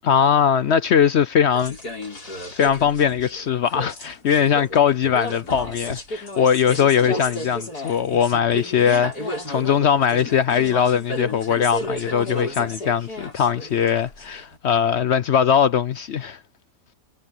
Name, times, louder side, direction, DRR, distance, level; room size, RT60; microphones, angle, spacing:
voice 1, 0.0-1.8 2.5-16.4, left 8 dB, 60° left, 0.7 m, -20 dB
sound 1, 1.5-14.6, left 1 dB, 85° left, 6.9 m, -33 dB
omnidirectional pair, 1.6 m